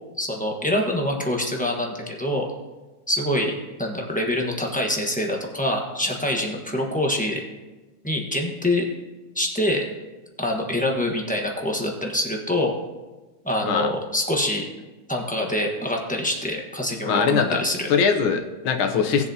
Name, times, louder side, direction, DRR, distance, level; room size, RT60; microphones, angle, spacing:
voice 1, 0.2-2.4 3.1-3.5 3.8-7.4 8.0-8.8 9.3-9.8 10.4-12.7 13.4-14.6 15.1-17.9, left 1 dB, 10° left, 0 dB, 0.5 m, -25 dB
voice 2, 17.0-19.3, left 6 dB, 70° left, 5 dB, 1.7 m, -22 dB
18.5 x 7.2 x 2.8 m, 1.2 s
omnidirectional pair, 2.4 m